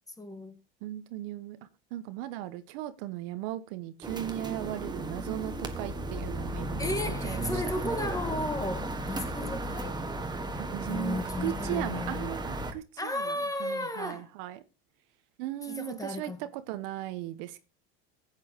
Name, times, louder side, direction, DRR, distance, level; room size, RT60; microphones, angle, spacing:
voice 1, 0.2-0.6 6.8-10.0 10.9-12.4 13.0-14.3 15.6-16.4, left 2 dB, 10° left, 1.5 m, -34 dB
voice 2, 0.8-1.6 1.9-6.9 7.2-7.6 10.7-14.6 15.4-17.6, right 14 dB, 65° right, 1.1 m, -37 dB
sound 1, 4.0-12.7, right 1 dB, 15° right, 1.6 m, -35 dB
15.0 x 8.9 x 3.0 m
hypercardioid pair, 95°, 30 cm